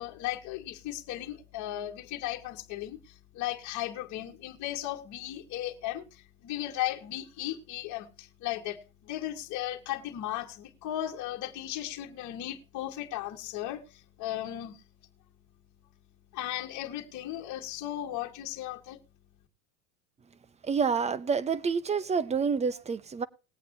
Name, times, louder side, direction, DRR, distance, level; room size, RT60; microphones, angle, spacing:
voice 1, 0.0-14.8 16.3-19.0, left 13 dB, 40° left, 1.9 m, -36 dB
voice 2, 20.6-23.3, right 5 dB, 15° right, 0.7 m, -28 dB
20.0 x 8.4 x 2.8 m
supercardioid pair, 125°, 43 cm